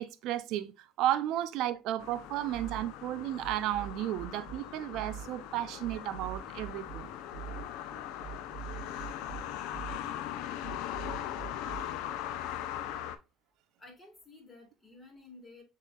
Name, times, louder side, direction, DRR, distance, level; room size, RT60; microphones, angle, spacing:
voice 1, 0.0-7.1, right 13 dB, 65° right, 0.4 m, -33 dB
sound 1, 2.0-13.2, left 11 dB, 75° left, 0.4 m, -40 dB
sound 2, 2.5-11.9, right 11 dB, 45° right, 1.1 m, -44 dB
voice 2, 13.8-15.6, left 3 dB, 15° left, 1.9 m, -53 dB
6.6 x 2.8 x 2.3 m
supercardioid pair, 105°, 0 cm